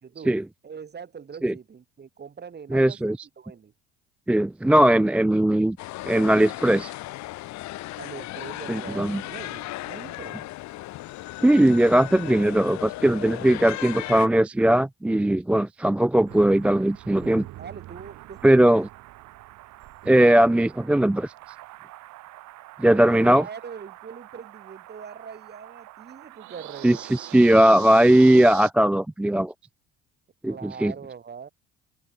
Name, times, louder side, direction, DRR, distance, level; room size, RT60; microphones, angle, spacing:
voice 1, 0.0-0.4 0.6-3.7 8.0-10.5 17.6-18.7 22.8-27.0 30.4-31.5, right 6 dB, 30° right, 2.4 m, -42 dB
voice 2, 2.7-3.2 4.3-5.8 6.1-6.9 8.7-9.2 11.4-17.5 18.4-18.9 20.1-21.3 22.8-23.4 26.8-29.5 30.4-30.9, right 1 dB, 5° right, 0.3 m, -19 dB
sound 1, 5.8-14.3, left 17 dB, 60° left, 2.1 m, -36 dB
sound 2, 16.3-28.7, right 17 dB, 65° right, 5.7 m, -44 dB
hypercardioid pair, 65°, 31 cm